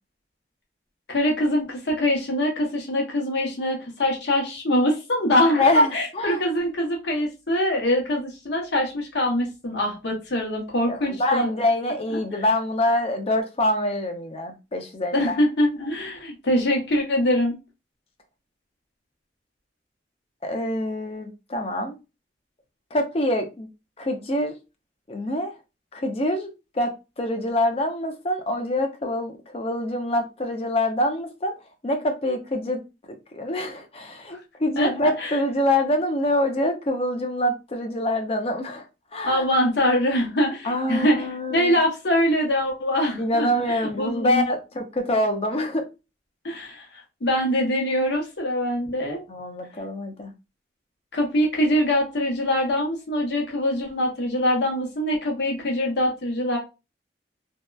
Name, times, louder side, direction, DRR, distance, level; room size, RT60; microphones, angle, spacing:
voice 1, 1.1-11.5 15.1-17.6 34.8-34.9 35.2-35.4 39.2-44.4 46.4-49.2 51.1-56.6, left 1 dB, 75° left, 0.8 m, -23 dB
voice 2, 5.6-6.4 10.9-15.4 20.4-21.9 22.9-23.7 24.0-24.5 25.1-25.5 25.9-31.5 31.8-32.8 33.3-38.8 39.1-39.4 40.6-41.8 43.2-45.9 49.3-50.3, left 1 dB, 35° left, 0.5 m, -25 dB
2.7 x 2.1 x 2.2 m
head